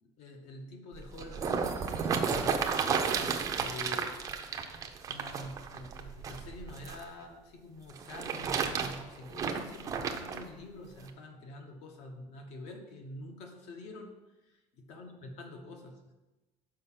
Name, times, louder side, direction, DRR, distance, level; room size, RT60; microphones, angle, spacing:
voice 1, 0.0-4.1 5.1-14.1 14.4-16.1, left 2 dB, 55° left, 4 dB, 1.2 m, -46 dB
sound 1, 0.9-7.0 7.9-10.4 11.1-11.2, right 6 dB, 25° right, 0.5 m, -33 dB
6.6 x 5.0 x 5.7 m, 1.1 s
cardioid pair, 175°, 13 cm